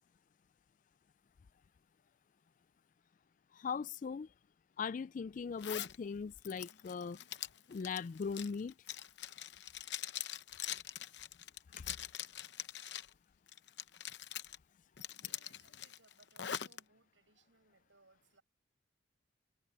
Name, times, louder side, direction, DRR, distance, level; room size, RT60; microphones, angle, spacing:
voice 1, 3.6-4.3 4.8-7.2 7.7-8.7, left 5 dB, 45° left, 0.3 m, -39 dB
Zipper (clothing), 5.6-6.0 6.4-13.1 13.5-14.6 15.0-16.8, left 11 dB, 65° left, 0.8 m, -43 dB
voice 2, 15.2-18.4, right 3 dB, 85° right, 7.1 m, -68 dB
head